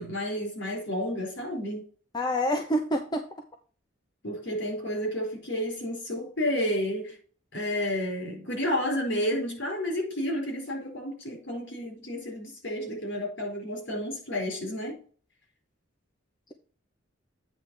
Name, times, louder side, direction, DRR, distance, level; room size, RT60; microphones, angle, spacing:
voice 1, 0.0-1.8 4.2-7.2 7.5-15.0, equal, 60° left, 4.6 m, -31 dB
voice 2, 2.1-3.2, equal, 20° left, 0.8 m, -27 dB
8.9 x 3.4 x 6.5 m
head